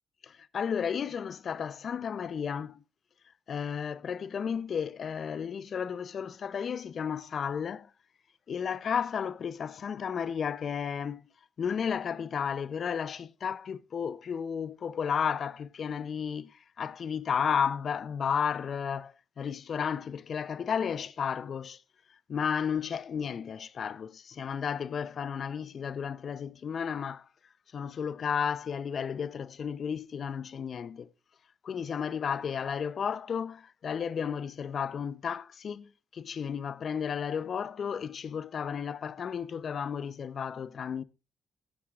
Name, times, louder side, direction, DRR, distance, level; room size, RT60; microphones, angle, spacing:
voice 1, 0.2-2.8 3.5-7.9 8.5-11.2 11.6-21.8 22.1-27.3 27.7-31.1 31.6-41.0, left 7 dB, 60° left, 0.7 m, -33 dB
16.0 x 9.7 x 2.4 m
supercardioid pair, 55°, 0 cm